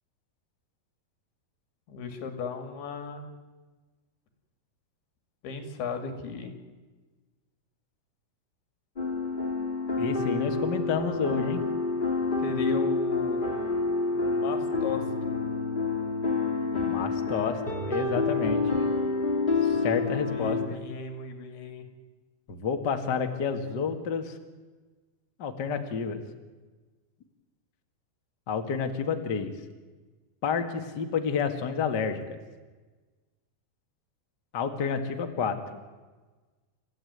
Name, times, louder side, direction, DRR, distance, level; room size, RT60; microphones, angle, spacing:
voice 1, 1.9-3.3 5.4-6.5 12.4-13.7 14.1-15.0 20.3-21.9, left 5 dB, 75° left, 6 dB, 4.3 m, -36 dB
sound 1, 9.0-20.7, left 3 dB, 15° left, 1.8 m, -28 dB
voice 2, 10.0-11.6 16.7-18.9 19.6-20.8 22.5-24.4 25.4-26.2 28.5-29.5 30.4-32.4 34.5-35.8, left 6 dB, 40° left, 5 dB, 1.6 m, -30 dB
30.0 x 14.5 x 9.5 m, 1.3 s
omnidirectional pair, 4.5 m